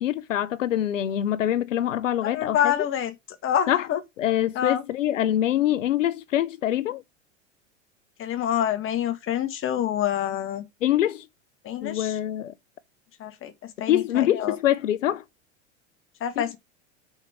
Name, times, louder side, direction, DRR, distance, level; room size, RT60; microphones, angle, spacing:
voice 1, 0.0-2.7 3.7-3.9 4.2-7.0 10.8-11.2 11.8-12.5 13.9-15.2 16.4-16.5, left 12 dB, 85° left, 0.6 m, -24 dB
voice 2, 2.2-3.1 3.4-4.0 4.5-4.8 8.2-10.6 11.6-12.2 13.2-14.6 16.2-16.6, left 10 dB, 35° left, 1.4 m, -27 dB
5.8 x 4.4 x 5.6 m
hypercardioid pair, 90°, 38 cm